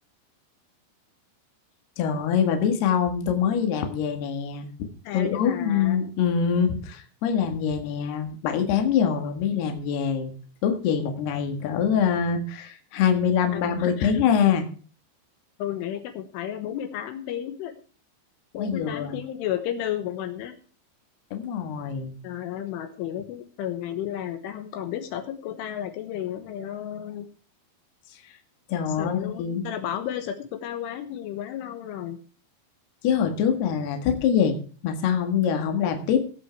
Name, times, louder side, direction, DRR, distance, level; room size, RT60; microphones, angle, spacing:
voice 1, 2.0-4.7 5.1-10.3 10.6-14.7 18.6-19.2 21.3-22.1 28.7-29.6 33.0-34.6 34.8-36.2, left 7 dB, 60° left, 5 dB, 3.4 m, -24 dB
voice 2, 5.1-6.0 13.5-14.1 15.6-17.7 18.5-20.5 22.2-27.3 29.0-32.2, left 10 dB, 75° left, 6 dB, 3.6 m, -32 dB
18.0 x 7.8 x 4.6 m, 0.40 s
omnidirectional pair, 5.8 m